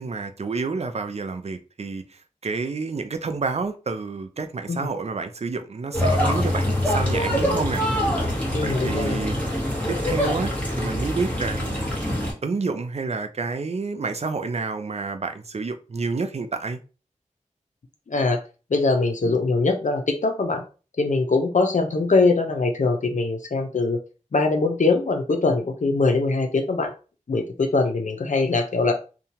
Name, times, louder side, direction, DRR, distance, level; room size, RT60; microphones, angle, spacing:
voice 1, 0.0-2.0 2.4-7.8 8.6-9.3 9.9-10.5 10.8-11.8 12.4-16.8, right 4 dB, 55° right, 0.4 m, -29 dB
sound 1, 5.9-12.3, equal, 10° left, 1.1 m, -24 dB
voice 2, 8.5-9.2 18.1-18.4 18.7-20.6 21.0-24.0 24.3-26.9 27.3-28.9, left 3 dB, 70° left, 0.6 m, -22 dB
2.8 x 2.3 x 2.7 m
wide cardioid pair, 65°, 13 cm